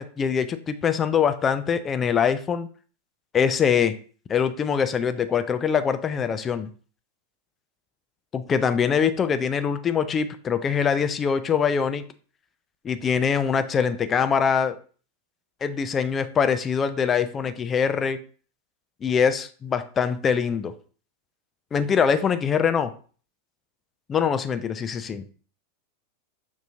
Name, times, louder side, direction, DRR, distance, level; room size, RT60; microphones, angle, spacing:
voice 1, 0.0-2.7 3.3-4.0 4.3-6.7 8.3-12.0 12.8-14.8 15.6-18.2 19.0-20.7 21.7-22.9 24.1-25.3, left 7 dB, 20° left, 10 dB, 0.3 m, -23 dB
5.4 x 2.6 x 2.6 m, 0.41 s
figure-of-eight pair, 90°, 0 cm